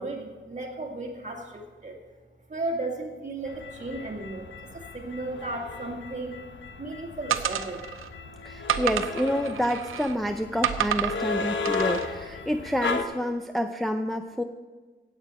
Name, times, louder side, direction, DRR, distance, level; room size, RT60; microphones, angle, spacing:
voice 1, 0.0-2.0 2.5-6.4 6.8-7.8, right 2 dB, 35° right, 1 dB, 2.0 m, -35 dB
sound 1, 3.4-13.0, left 4 dB, 65° left, 0.9 m, -35 dB
sound 2, 7.3-8.1 8.7-10.2 10.6-11.2 11.7-12.1, right 10 dB, 90° right, 0.7 m, -29 dB
voice 2, 8.4-14.4, equal, ahead, 5 dB, 0.5 m, -28 dB
16.0 x 8.2 x 4.2 m, 1.4 s
wide cardioid pair, 110°, 21 cm